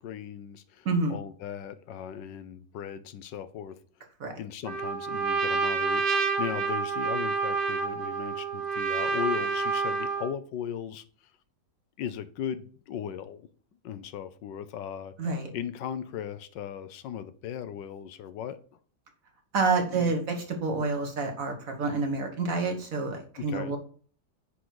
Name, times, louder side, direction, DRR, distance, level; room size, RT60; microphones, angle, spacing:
voice 1, 0.0-3.8 4.4-11.0 12.0-13.5 13.8-15.2 15.5-18.6 19.9-20.2 23.4-23.8, left 9 dB, 90° left, 1.4 m, -37 dB
voice 2, 0.9-1.2 4.2-4.3 15.2-15.5 19.5-23.8, right 4 dB, 50° right, 1.9 m, -28 dB
Trumpet, 4.7-10.3, right 4 dB, 70° right, 1.7 m, -28 dB
9.5 x 3.9 x 4.8 m
omnidirectional pair, 1.9 m